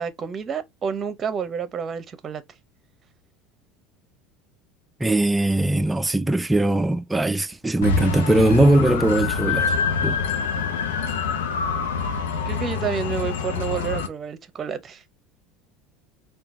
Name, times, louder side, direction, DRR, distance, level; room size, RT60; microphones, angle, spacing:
voice 1, 0.0-2.4 12.4-15.0, right 6 dB, 35° right, 0.8 m, -29 dB
voice 2, 5.0-9.8 10.0-10.2, right 1 dB, 10° right, 0.4 m, -20 dB
sound 1, 7.8-14.1, left 5 dB, 85° left, 0.7 m, -25 dB
4.4 x 2.4 x 3.7 m
hypercardioid pair, 85°, 0 cm